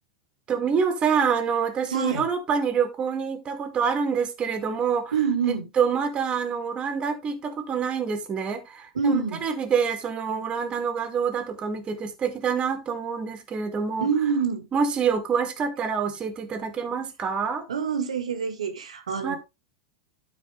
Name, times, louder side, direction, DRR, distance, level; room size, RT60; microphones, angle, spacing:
voice 1, 0.5-5.1 5.8-9.1 9.4-14.1 14.7-17.7 19.2-19.4, right 6 dB, 30° right, 2.2 m, -26 dB
voice 2, 1.9-2.3 5.1-5.7 9.0-9.4 14.0-14.7 17.7-19.4, right 6 dB, 85° right, 1.8 m, -26 dB
12.0 x 4.7 x 3.3 m
hypercardioid pair, 95°, 3 cm